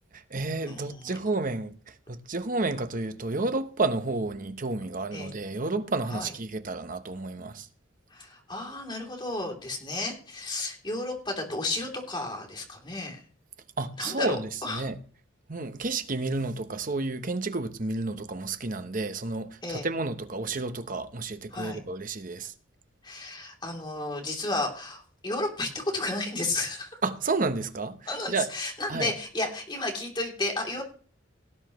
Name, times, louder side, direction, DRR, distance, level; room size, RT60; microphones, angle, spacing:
voice 1, 0.1-7.7 13.8-15.0 15.5-22.5 27.0-28.5 28.9-29.1, right 3 dB, 40° right, 0.9 m, -31 dB
voice 2, 0.7-1.1 5.1-5.3 6.1-6.3 8.1-13.2 14.0-14.9 19.6-19.9 21.5-21.8 23.0-26.9 28.1-30.8, left 2 dB, 25° left, 3.1 m, -33 dB
18.0 x 9.8 x 3.1 m
head